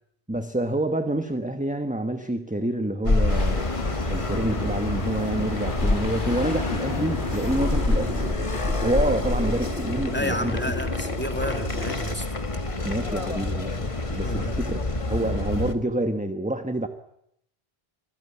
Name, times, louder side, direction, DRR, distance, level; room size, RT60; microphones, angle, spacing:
voice 1, 0.3-3.6 4.1-8.3 8.8-10.6 12.8-14.8 15.1-16.9, right 1 dB, 10° right, 8 dB, 1.2 m, -27 dB
sound 1, 3.0-15.7, left 2 dB, 30° left, 1.6 m, -27 dB
sound 2, 3.3-8.3, left 3 dB, 55° left, 2.7 m, -34 dB
sound 3, 6.1-12.1 12.5-12.6, left 1 dB, 80° left, 2.1 m, -38 dB
voice 2, 10.1-12.3 14.2-14.6, equal, 10° left, 6 dB, 2.5 m, -31 dB
26.0 x 16.5 x 10.0 m, 0.74 s
omnidirectional pair, 1.0 m